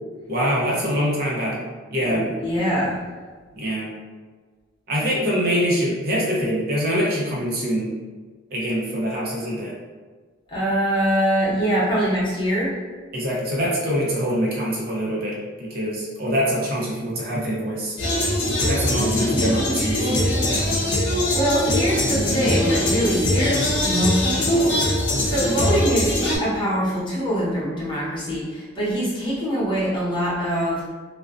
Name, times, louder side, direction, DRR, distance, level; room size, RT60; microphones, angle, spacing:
voice 1, 0.3-1.6 1.9-2.3 3.5-3.9 4.9-7.9 8.5-9.7 11.5-11.6 13.1-18.0 18.6-20.2, equal, 55° right, -4 dB, 0.7 m, -24 dB
voice 2, 2.0-3.0 10.5-12.7 21.0-24.8 25.2-30.8, equal, 25° left, -9 dB, 1.0 m, -23 dB
sound 1, 18.0-26.4, left 1 dB, 85° left, 0.6 m, -22 dB
2.4 x 2.2 x 2.4 m, 1.4 s
head